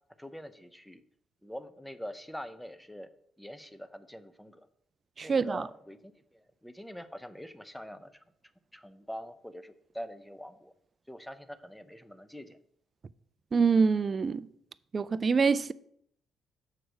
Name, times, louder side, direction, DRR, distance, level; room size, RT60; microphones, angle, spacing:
voice 1, 0.2-1.0 1.4-3.1 3.4-4.7 5.2-8.2 8.7-10.7 11.1-12.6, equal, 5° left, 0.6 m, -44 dB
voice 2, 5.2-5.7 13.5-14.5 14.9-15.7, right 5 dB, 35° right, 0.4 m, -25 dB
6.7 x 4.6 x 6.2 m
cardioid pair, 90°, 0 cm